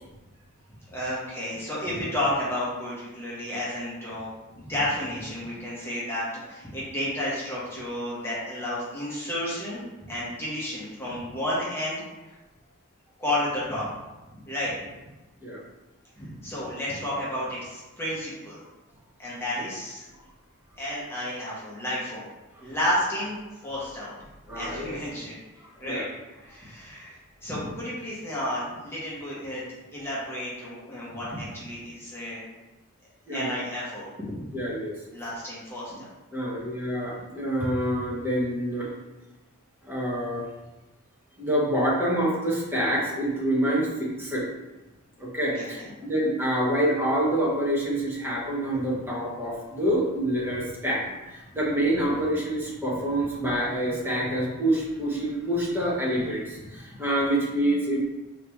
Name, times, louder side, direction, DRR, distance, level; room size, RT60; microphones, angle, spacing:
voice 1, 0.9-4.3 4.7-9.8 10.1-12.3 13.2-13.9 14.5-14.7 16.2-18.6 19.2-20.1 20.8-22.2 22.6-23.3 23.6-24.1 24.6-25.4 25.8-27.1 27.4-29.6 29.9-32.4 33.3-34.3 35.1-36.1 45.5-45.9, left 1 dB, 10° left, -8 dB, 1.1 m, -31 dB
voice 2, 24.5-25.0 25.8-26.0 33.3-33.5 34.5-34.9 36.3-38.9 39.9-40.4 41.4-44.5 45.2-58.0, right 1 dB, 10° right, -6 dB, 1.1 m, -27 dB
4.7 x 3.0 x 3.5 m, 1.1 s
head